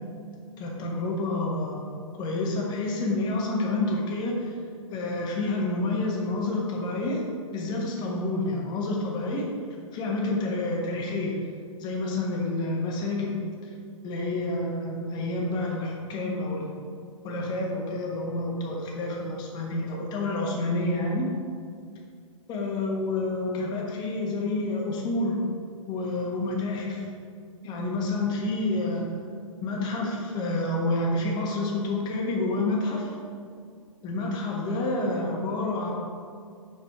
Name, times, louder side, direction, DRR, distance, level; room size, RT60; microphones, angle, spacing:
voice 1, 0.6-1.8 2.1-4.5 4.9-7.2 7.5-9.5 9.9-11.4 11.8-13.7 14.0-16.7 17.2-21.3 22.5-25.4 25.9-27.0 27.6-29.0 29.6-33.1 34.0-35.9, left 2 dB, 25° left, -1 dB, 1.3 m, -28 dB
6.9 x 5.0 x 4.9 m, 2.2 s
figure-of-eight pair, 120°, 18 cm